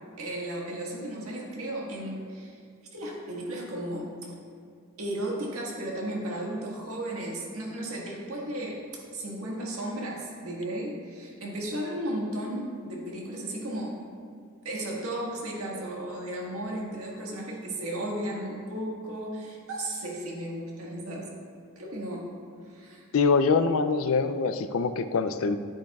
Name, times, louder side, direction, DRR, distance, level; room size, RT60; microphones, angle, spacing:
voice 1, 0.2-2.6 2.9-4.3 5.0-14.0 14.7-21.3 21.8-22.3 22.7-23.1, right 1 dB, 80° right, -3 dB, 1.6 m, -34 dB
voice 2, 23.1-25.6, left 4 dB, 70° left, 11 dB, 0.4 m, -24 dB
9.8 x 8.7 x 2.3 m, 2.2 s
head